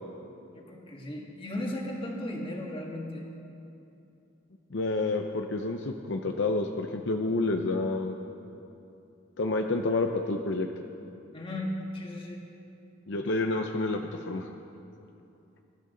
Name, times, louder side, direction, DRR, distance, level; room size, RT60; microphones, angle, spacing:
voice 1, 0.5-3.2 11.3-12.4, left 1 dB, 25° left, -1 dB, 2.1 m, -36 dB
voice 2, 4.7-8.2 9.4-10.7 13.1-14.0 14.3-14.5, left 2 dB, 65° left, 4 dB, 0.7 m, -29 dB
22.5 x 12.5 x 3.9 m, 2.8 s
head